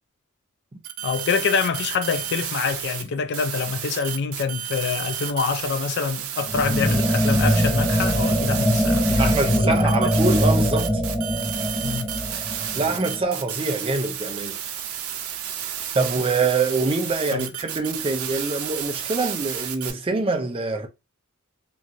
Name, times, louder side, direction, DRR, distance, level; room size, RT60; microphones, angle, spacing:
sound 1, 0.8-3.0 3.3-19.9, right 9 dB, 90° right, 0.5 m, -31 dB
voice 1, 1.0-9.7 11.8-12.1 17.3-17.5, left 5 dB, 55° left, 0.3 m, -26 dB
sound 2, 6.5-13.2, equal, 15° left, 0.8 m, -22 dB
voice 2, 9.2-11.0 12.8-14.6 15.9-20.9, right 3 dB, 25° right, 0.4 m, -24 dB
3.0 x 2.5 x 2.5 m
head